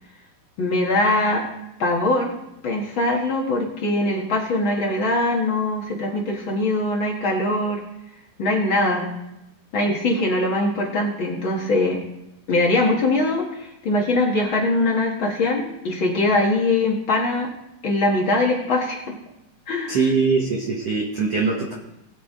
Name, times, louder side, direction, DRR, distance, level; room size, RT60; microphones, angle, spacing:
voice 1, 0.6-1.4 1.8-2.3 2.6-7.8 8.4-9.1 9.7-12.0 12.5-17.5 17.8-19.0 19.7-20.0, left 2 dB, 55° left, -1 dB, 1.4 m, -22 dB
voice 2, 19.9-21.7, right 4 dB, 65° right, -1 dB, 1.6 m, -22 dB
21.0 x 7.3 x 3.7 m, 0.91 s
omnidirectional pair, 4.7 m